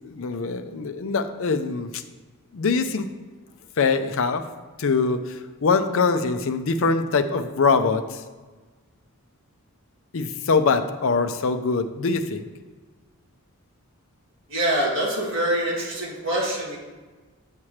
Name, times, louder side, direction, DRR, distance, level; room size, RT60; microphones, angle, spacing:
voice 1, 0.0-2.0 2.5-3.1 3.8-4.4 4.8-8.2 10.1-12.4, left 4 dB, 60° left, 9 dB, 0.5 m, -23 dB
voice 2, 14.5-16.8, right 1 dB, 55° right, -6 dB, 2.0 m, -25 dB
7.4 x 7.2 x 3.2 m, 1.3 s
head